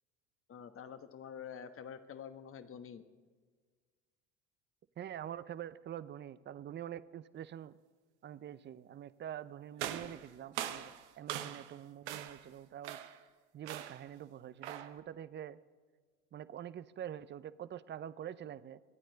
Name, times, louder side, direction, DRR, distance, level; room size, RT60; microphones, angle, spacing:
voice 1, 0.5-3.0, left 7 dB, 40° left, 10 dB, 1.2 m, -47 dB
voice 2, 5.0-7.8 8.2-13.0 13.5-15.6 16.3-18.8, right 10 dB, 35° right, 17 dB, 0.6 m, -45 dB
sound 1, 9.8-11.8 12.1-12.5 12.8-13.2 13.7-14.1 14.6-15.0, right 11 dB, 85° right, 0.8 m, -42 dB
24.5 x 9.3 x 4.0 m, 1.5 s
hypercardioid pair, 75°, 34 cm